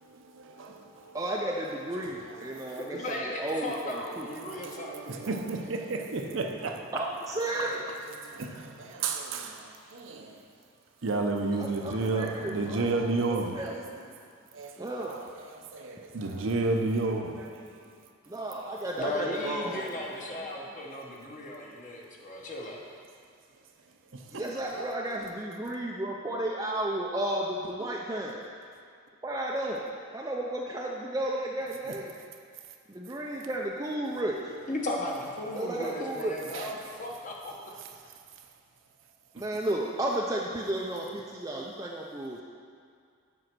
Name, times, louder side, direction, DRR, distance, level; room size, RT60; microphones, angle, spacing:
voice 1, 0.0-1.2 2.0-2.1 2.4-3.1 4.4-6.9 7.7-7.8 8.2-10.4 11.0-13.8 14.5-17.8 24.1-24.4 24.7-24.8 36.5-36.7, right 3 dB, 65° right, 3 dB, 0.7 m, -32 dB
voice 2, 1.1-4.3 6.9-7.8 11.5-12.9 13.3-13.8 14.8-15.2 18.3-20.1 24.3-28.4 29.2-29.8 30.1-32.1 32.9-34.5 35.5-36.3 39.3-42.4, right 1 dB, 15° right, -2 dB, 0.4 m, -33 dB
voice 3, 2.7-5.0 19.0-22.8 34.7-37.5, left 1 dB, 35° left, -1 dB, 1.1 m, -36 dB
7.7 x 5.3 x 6.0 m, 2.3 s
head